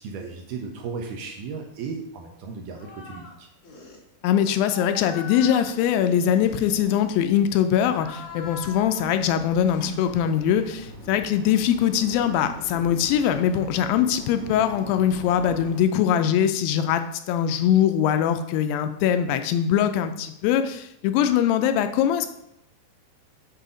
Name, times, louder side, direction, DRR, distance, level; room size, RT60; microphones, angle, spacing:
voice 1, 0.0-3.5, right 5 dB, 75° right, 2 dB, 1.9 m, -35 dB
sound 1, 2.7-3.4 3.6-4.0 4.6-7.4 7.8-9.2 9.7-10.7 11.8-13.6, left 3 dB, 55° left, 2.9 m, -42 dB
voice 2, 4.2-22.3, left 9 dB, 90° left, 9 dB, 2.3 m, -22 dB
sound 2, 5.9-15.8, equal, 40° right, 1.6 m, -44 dB
7.7 x 2.7 x 4.9 m, 0.80 s
omnidirectional pair, 4.1 m